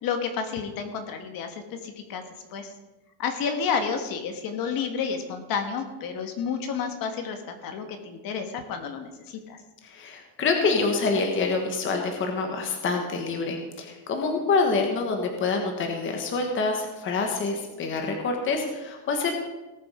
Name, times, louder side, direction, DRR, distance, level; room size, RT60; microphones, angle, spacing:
voice 1, 0.0-2.2 2.5-2.7 3.2-9.6, left 6 dB, 45° left, 6 dB, 1.5 m, -30 dB
voice 2, 9.8-19.4, left 4 dB, 25° left, 3 dB, 1.3 m, -26 dB
18.5 x 7.0 x 4.9 m, 1.1 s
cardioid pair, 175°, 48 cm